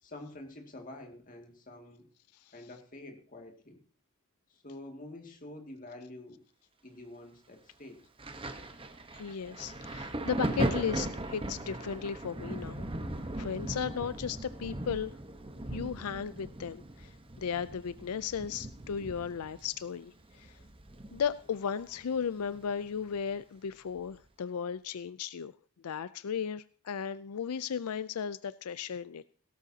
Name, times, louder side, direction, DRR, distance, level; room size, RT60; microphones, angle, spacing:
voice 1, 0.0-2.1 2.5-3.8 4.5-6.4 6.8-8.0, left 1 dB, 35° left, 3 dB, 2.2 m, -47 dB
Thunder, 8.2-21.6 21.8-23.2 24.0-24.2, right 1 dB, 25° right, 1.0 m, -38 dB
voice 2, 9.1-12.9 13.4-15.1 15.7-20.6 21.1-25.5 25.8-29.3, left 7 dB, 90° left, 15 dB, 0.4 m, -35 dB
17.0 x 13.0 x 2.8 m, 0.41 s
head